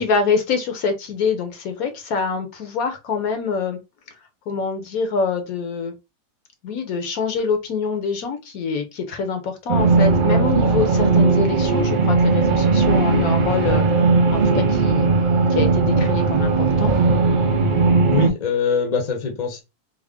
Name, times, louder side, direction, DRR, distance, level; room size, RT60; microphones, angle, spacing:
voice 1, 0.0-3.8 4.5-5.9 6.6-15.1 15.6-16.9, left 5 dB, 70° left, 1.2 m, -25 dB
sound 1, 9.7-18.3, right 4 dB, 70° right, 0.4 m, -17 dB
voice 2, 18.1-19.6, left 5 dB, 35° left, 0.7 m, -23 dB
3.5 x 2.0 x 3.5 m
omnidirectional pair, 1.6 m